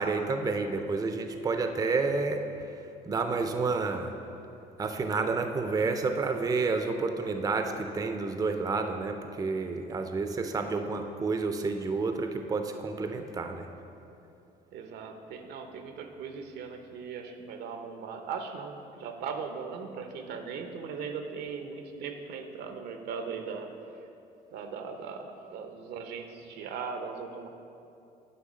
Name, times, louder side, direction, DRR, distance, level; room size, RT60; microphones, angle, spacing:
voice 1, 0.0-2.4 3.1-4.1 4.8-13.7, right 4 dB, 20° right, 6 dB, 0.5 m, -30 dB
voice 2, 14.7-23.7 24.5-27.5, right 5 dB, 75° right, 6 dB, 0.7 m, -39 dB
9.4 x 3.6 x 6.2 m, 2.7 s
cardioid pair, 110°, 17 cm